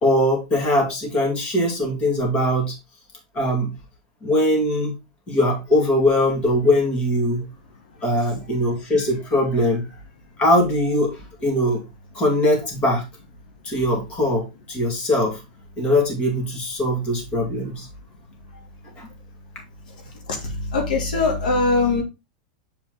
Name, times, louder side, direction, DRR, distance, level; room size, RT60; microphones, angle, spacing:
voice 1, 0.0-2.8 3.3-3.8 4.2-5.0 5.3-7.5 8.0-9.9 10.4-11.8 12.1-13.1 13.6-15.4 15.8-17.9 19.0-19.1, left 1 dB, 25° left, 0 dB, 2.3 m, -21 dB
voice 2, 20.3-22.0, left 3 dB, 90° left, 2 dB, 2.5 m, -21 dB
7.3 x 4.5 x 3.8 m, 0.25 s
supercardioid pair, 155°, 4 cm